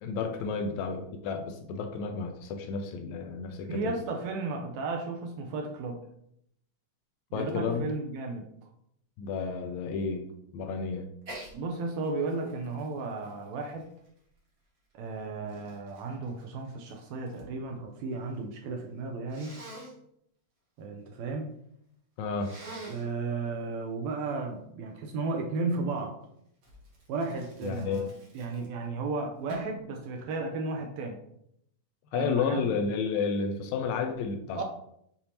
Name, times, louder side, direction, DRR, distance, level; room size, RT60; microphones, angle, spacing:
voice 1, 0.0-3.9 7.3-7.9 9.2-10.2 10.5-11.1 22.2-22.5 27.6-28.1 32.1-34.6, left 5 dB, 80° left, 4 dB, 1.7 m, -31 dB
voice 2, 3.7-6.0 7.3-8.5 11.5-13.8 14.9-19.6 20.8-21.5 22.9-26.2 27.1-28.1 28.3-31.2 32.1-32.7 34.5-34.6, right 3 dB, 80° right, 2 dB, 1.7 m, -34 dB
Sneeze, 11.2-11.5 12.0-14.4 15.1-17.5 17.8-18.4 19.3-19.9 22.4-23.1 26.6-28.9 29.5-29.8, right 1 dB, 55° right, 1.2 m, -46 dB
6.8 x 2.6 x 2.9 m, 0.73 s
omnidirectional pair, 3.4 m